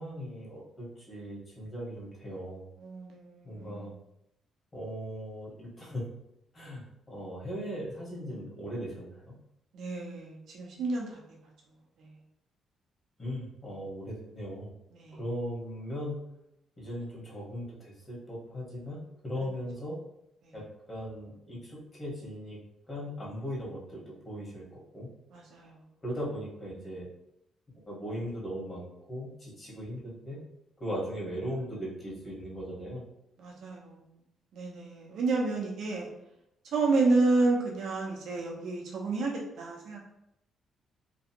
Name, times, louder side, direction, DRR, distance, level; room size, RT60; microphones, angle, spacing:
voice 1, 0.0-2.6 3.4-3.9 4.7-6.1 6.5-9.3 13.2-14.7 15.1-16.2 16.8-19.9 20.5-22.6 22.9-25.1 26.0-27.1 27.9-30.4 30.8-33.0, equal, 35° left, -5 dB, 1.5 m, -38 dB
voice 2, 2.8-3.9 9.7-11.2 12.0-12.1 14.9-15.2 20.4-20.5 25.3-25.8 33.4-34.0 34.5-36.1 36.7-40.1, right 3 dB, 75° right, -1 dB, 0.9 m, -30 dB
3.1 x 2.5 x 2.9 m, 0.82 s
cardioid pair, 90°, 0 cm